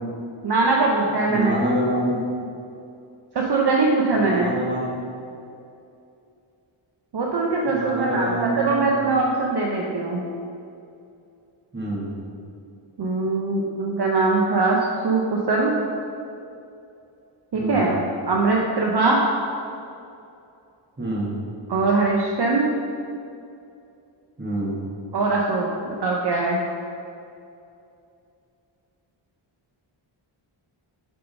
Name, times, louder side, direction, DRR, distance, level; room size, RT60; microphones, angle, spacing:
voice 1, 0.4-1.6 3.3-4.5 7.1-10.2 13.0-14.8 15.0-15.7 17.5-18.0 18.3-19.2 21.7-22.7 25.1-26.6, right 3 dB, 55° right, -2 dB, 0.7 m, -21 dB
voice 2, 1.3-2.2 4.2-5.0 7.7-8.9 11.7-12.1 17.5-17.9 21.0-21.3 24.4-24.8, right 1 dB, 20° right, -5 dB, 1.4 m, -26 dB
6.8 x 3.7 x 5.3 m, 2.6 s
wide cardioid pair, 140°, 50 cm